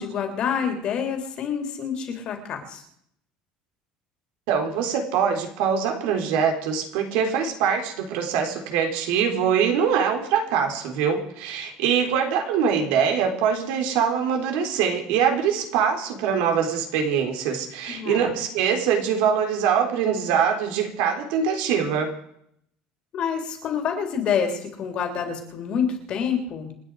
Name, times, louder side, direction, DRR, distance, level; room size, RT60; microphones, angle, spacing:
voice 1, 0.0-2.8 18.0-18.3 23.1-26.7, left 7 dB, 40° left, 5 dB, 3.3 m, -27 dB
voice 2, 4.5-22.1, right 7 dB, 80° right, 4 dB, 3.8 m, -23 dB
28.5 x 9.8 x 4.9 m, 0.70 s
cardioid pair, 170°, 3 cm